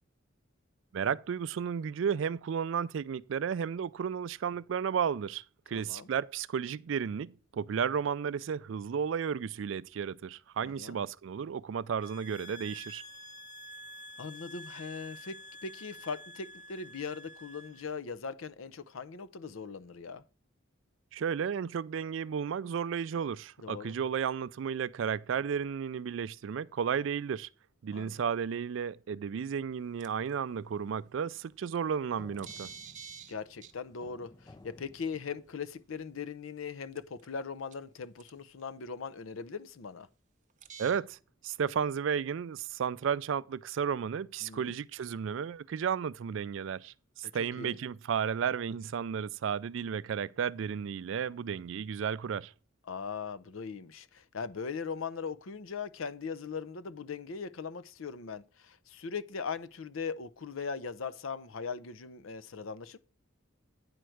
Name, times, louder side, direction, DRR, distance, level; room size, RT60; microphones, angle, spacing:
voice 1, 0.9-13.0 21.1-27.5 27.8-32.7 40.8-41.2 41.4-52.5, right 7 dB, 65° right, 0.3 m, -33 dB
voice 2, 5.7-6.1 10.6-11.0 14.2-20.2 23.6-24.0 27.9-28.2 33.3-40.1 44.4-44.8 47.4-47.8 52.9-63.0, left 5 dB, 75° left, 0.6 m, -40 dB
sound 1, 12.0-17.9, equal, 35° left, 0.8 m, -48 dB
sound 2, 30.0-30.3 31.7-31.8 32.4-33.3 33.6-33.7 35.6-35.7 37.0-37.4 37.7-37.8 38.2-38.3 40.6-41.0, right 7 dB, 35° right, 0.7 m, -46 dB
sound 3, 31.2-36.1, left 2 dB, 20° left, 0.3 m, -57 dB
9.4 x 4.5 x 6.3 m
head